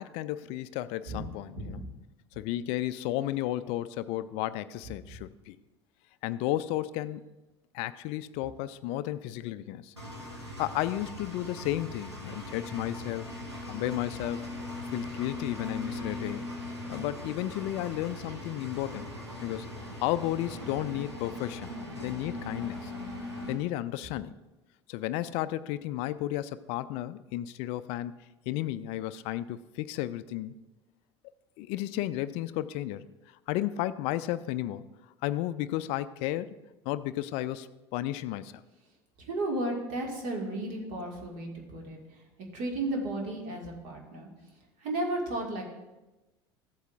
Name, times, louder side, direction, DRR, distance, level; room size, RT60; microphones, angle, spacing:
voice 1, 0.0-1.8 2.4-5.6 6.2-7.2 7.7-9.9 10.6-13.3 13.7-14.4 14.9-16.4 16.9-19.1 19.4-19.7 20.0-22.9 23.5-24.4 24.9-28.2 28.5-30.5 31.6-33.1 33.5-34.8 35.2-36.6 36.9-38.6, left 14 dB, 45° left, 15 dB, 0.4 m, -33 dB
voice 2, 1.6-1.9 5.1-5.2 39.3-44.3 44.8-45.6, right 1 dB, 50° right, 0 dB, 1.9 m, -34 dB
Engine, 10.0-23.5, left 1 dB, 90° right, 1.8 m, -40 dB
14.5 x 8.0 x 2.4 m, 1.1 s
figure-of-eight pair, 70°, 14 cm